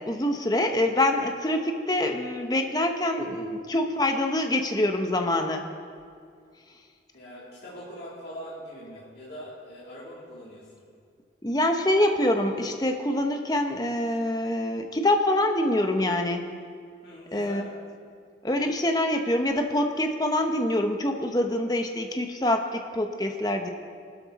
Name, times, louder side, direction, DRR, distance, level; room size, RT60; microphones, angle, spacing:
voice 1, 0.1-5.6 11.4-16.4 17.3-17.7 18.4-23.7, left 1 dB, 20° left, 5 dB, 0.9 m, -25 dB
voice 2, 7.1-10.8 17.0-17.7, equal, 65° left, -9 dB, 3.2 m, -42 dB
19.5 x 12.0 x 4.1 m, 2.2 s
head